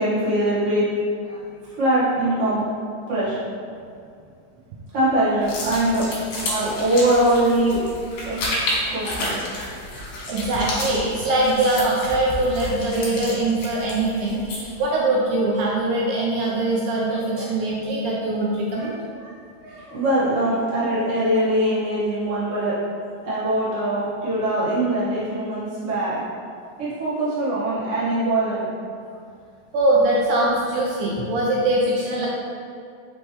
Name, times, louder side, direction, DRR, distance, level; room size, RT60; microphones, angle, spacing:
voice 1, 0.0-1.4 1.8-3.3 4.9-6.1 6.4-9.4 13.9-14.0 17.0-17.5 18.8-22.8 23.2-26.2 26.8-28.7, right 1 dB, 50° right, -11 dB, 0.8 m, -23 dB
sound 1, 5.4-14.8, left 1 dB, 65° left, 2.1 m, -30 dB
voice 2, 10.3-19.0 29.7-32.3, right 2 dB, 80° right, -4 dB, 1.9 m, -22 dB
5.2 x 3.3 x 3.0 m, 2.4 s
omnidirectional pair, 3.9 m